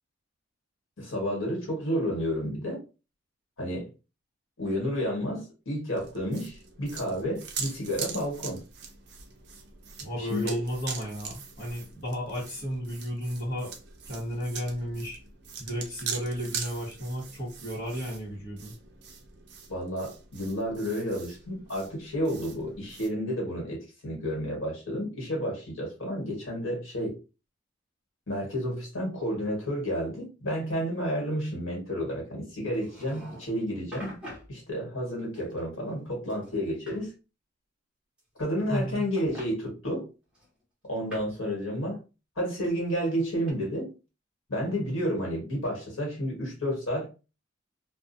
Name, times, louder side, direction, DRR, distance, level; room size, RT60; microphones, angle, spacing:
voice 1, 1.0-2.8 3.6-3.9 4.6-8.6 10.2-10.6 19.7-27.2 28.3-34.2 34.5-37.1 38.4-40.1 40.8-42.0 42.4-43.9 44.5-47.1, equal, 80° left, 1.4 m, -31 dB
sound 1, 5.9-23.1, right 6 dB, 55° right, 0.5 m, -42 dB
voice 2, 10.0-13.7 14.0-15.2 15.6-18.7 38.7-39.0, equal, 55° left, 1.0 m, -33 dB
sound 2, 32.7-33.6 33.9-34.5 35.3-36.0 36.3-37.0 38.2-38.8 39.2-39.5 40.3-41.4 42.6-43.5, equal, 5° right, 0.9 m, -46 dB
2.4 x 2.3 x 2.5 m
head